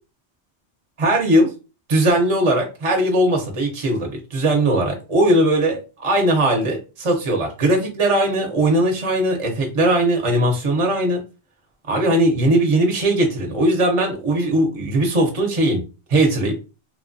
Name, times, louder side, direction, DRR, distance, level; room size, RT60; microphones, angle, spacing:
voice 1, 1.0-1.5 1.9-11.2 11.9-15.8 16.1-16.5, right 1 dB, 35° right, 1 dB, 0.5 m, -19 dB
2.9 x 2.1 x 2.5 m, 0.31 s
omnidirectional pair, 1.2 m